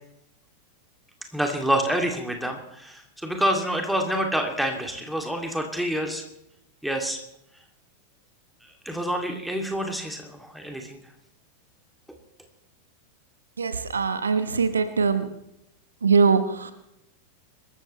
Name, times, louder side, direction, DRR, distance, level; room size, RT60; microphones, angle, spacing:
voice 1, 1.3-6.2 6.8-7.2 8.8-11.0, equal, ahead, 2 dB, 2.7 m, -27 dB
voice 2, 13.6-15.3 16.0-16.7, right 5 dB, 70° right, 11 dB, 1.1 m, -22 dB
25.5 x 14.0 x 3.3 m, 0.80 s
figure-of-eight pair, 90°, 0 cm